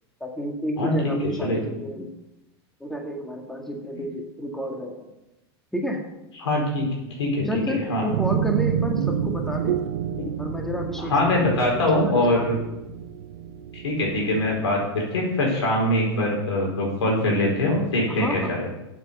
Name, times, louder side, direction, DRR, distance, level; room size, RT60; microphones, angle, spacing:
voice 1, 0.2-2.1 2.8-5.1 5.7-6.0 7.4-9.8 10.4-12.8 18.1-18.6, equal, 5° left, 1 dB, 1.9 m, -31 dB
voice 2, 0.8-1.1 1.4-1.6 6.4-6.9 7.2-8.1 11.0-12.6 13.7-18.7, left 1 dB, 90° left, -1 dB, 4.7 m, -23 dB
sound 1, 8.1-14.7, right 9 dB, 80° right, 0.8 m, -29 dB
7.9 x 7.8 x 7.0 m, 0.95 s
hypercardioid pair, 110°, 14 cm